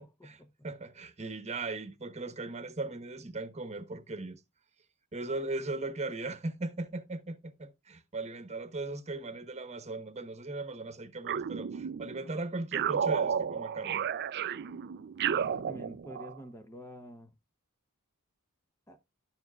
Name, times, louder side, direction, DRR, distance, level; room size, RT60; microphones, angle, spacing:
voice 1, 0.0-0.5 15.3-17.3 18.9-19.0, equal, 10° left, 0.7 m, -47 dB
voice 2, 0.6-4.4 5.1-14.0, right 2 dB, 30° right, 1.1 m, -38 dB
sound 1, 11.2-12.2 12.7-16.4, right 7 dB, 50° right, 0.4 m, -32 dB
12.0 x 7.1 x 2.3 m
head